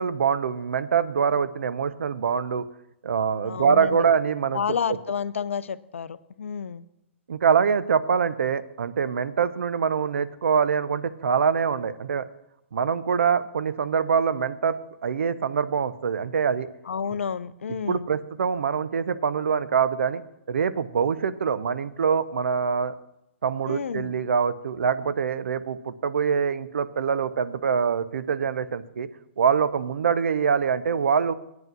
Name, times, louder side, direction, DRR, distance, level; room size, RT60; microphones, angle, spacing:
voice 1, 0.0-2.7 3.0-4.6 4.9-5.0 7.3-12.3 12.7-14.8 15.0-16.7 17.9-20.2 20.5-22.9 23.4-29.1 29.4-31.3, right 6 dB, 70° right, 14 dB, 0.6 m, -24 dB
voice 2, 3.4-4.0 4.5-6.9 16.9-18.1 23.7-24.1, left 7 dB, 75° left, 16 dB, 0.5 m, -30 dB
9.1 x 5.6 x 7.5 m, 0.83 s
figure-of-eight pair, 120°, 7 cm